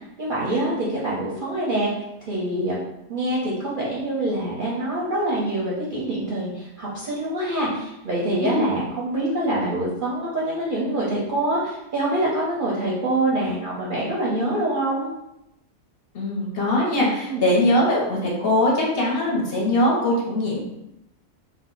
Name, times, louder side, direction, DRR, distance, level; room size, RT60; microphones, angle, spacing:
voice 1, 0.2-1.9 2.3-2.8 3.1-15.1 17.3-17.4, right 1 dB, 55° right, -7 dB, 0.6 m, -25 dB
voice 2, 16.1-20.6, left 1 dB, 55° left, -3 dB, 0.7 m, -21 dB
2.5 x 2.1 x 3.7 m, 0.87 s
omnidirectional pair, 1.5 m